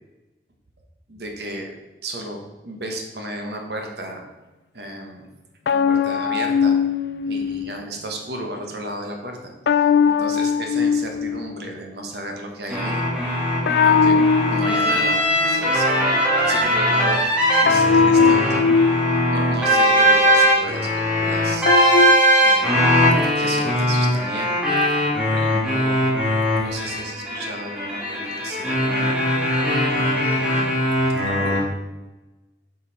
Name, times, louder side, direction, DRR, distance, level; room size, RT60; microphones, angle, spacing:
voice 1, 1.1-1.7 2.0-4.3 4.7-5.3 5.7-6.8 7.2-9.5 10.0-13.0 13.8-14.2 14.5-17.3 17.6-18.6 19.3-21.7 22.4-23.0 23.2-24.5 24.9-26.0 26.5-29.1 29.8-30.5 30.9-31.0 31.2-31.7, right 1 dB, 65° right, 2 dB, 1.2 m, -34 dB
sound 1, 5.7-7.9 9.7-11.7 13.7-15.7 17.7-19.6 21.7-22.1, left 5 dB, 70° left, 0.4 m, -19 dB
sound 2, 12.7-31.6, equal, 5° right, 1.5 m, -20 dB
7.2 x 5.4 x 4.1 m, 1.1 s
head